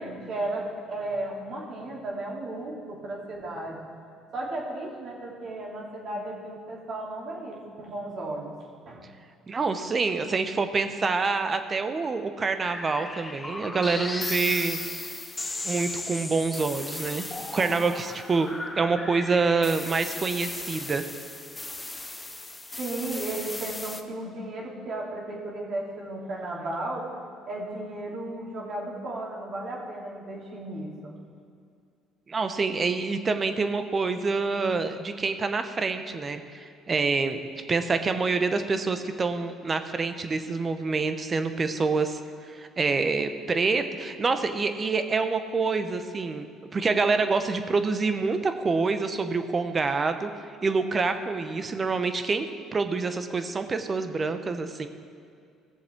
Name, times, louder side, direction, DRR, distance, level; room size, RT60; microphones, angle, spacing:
voice 1, 0.0-3.8 4.3-8.5 8.8-9.1 22.8-27.0 27.5-31.1, right 2 dB, 55° right, -3 dB, 3.0 m, -34 dB
voice 2, 9.5-14.8 15.6-17.3 17.5-18.5 18.8-21.0 32.3-37.4 37.7-42.2 42.5-50.3 50.6-52.5 52.7-54.9, right 4 dB, 35° right, 9 dB, 0.9 m, -26 dB
sound 1, 12.6-24.0, left 2 dB, 15° left, 0.8 m, -36 dB
17.0 x 7.2 x 4.6 m, 2.4 s
supercardioid pair, 85°, 0 cm